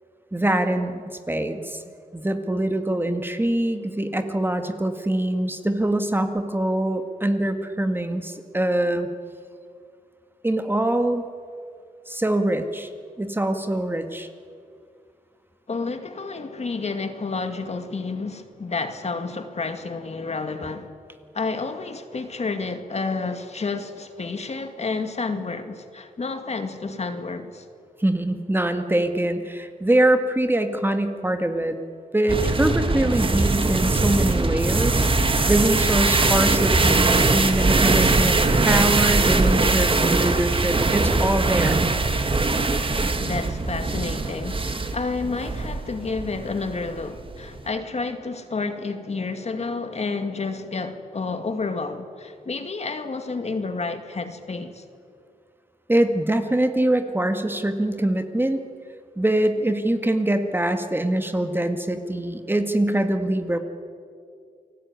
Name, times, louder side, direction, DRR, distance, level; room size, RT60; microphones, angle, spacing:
voice 1, 0.3-1.8 2.1-9.1 10.4-11.2 12.1-12.9 13.2-14.3 28.0-31.8 32.1-35.1 35.5-41.8 55.9-58.6 59.2-63.6, right 1 dB, 15° right, 1.9 m, -23 dB
voice 2, 15.7-20.9 21.3-27.7 43.2-54.8, left 4 dB, 45° left, 2.1 m, -30 dB
sound 1, 32.3-47.7, right 3 dB, 35° right, 2.1 m, -21 dB
29.0 x 19.5 x 9.7 m
wide cardioid pair, 100°, 15 cm